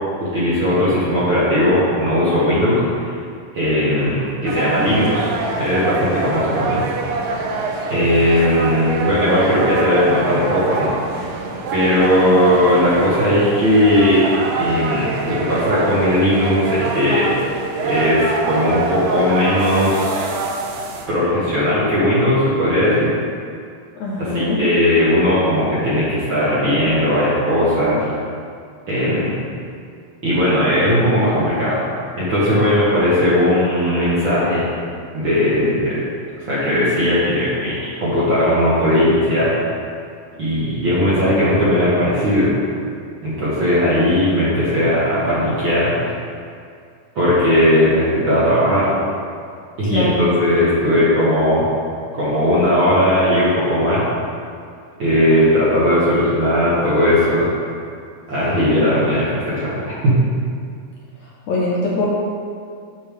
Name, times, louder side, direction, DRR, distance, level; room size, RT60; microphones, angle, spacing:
voice 1, 0.2-2.8 3.1-3.2 3.5-5.3 5.6-6.8 7.9-10.9 11.7-14.2 14.6-17.3 17.8-20.3 21.1-23.1 24.2-28.1 28.9-29.3 30.2-31.8 32.2-34.6 35.1-35.9 36.4-39.5 40.4-42.5 43.2-46.1 47.1-48.9 49.8-51.7 52.1-54.0 55.0-57.5 58.3-60.2, left 1 dB, 50° right, -10 dB, 1.6 m, -17 dB
sound 1, 4.5-21.1, right 3 dB, 90° right, 2.5 m, -25 dB
voice 2, 24.0-24.6 49.9-50.3 61.5-62.1, left 2 dB, 65° left, -5 dB, 1.9 m, -22 dB
8.8 x 6.7 x 3.4 m, 2.3 s
omnidirectional pair, 4.0 m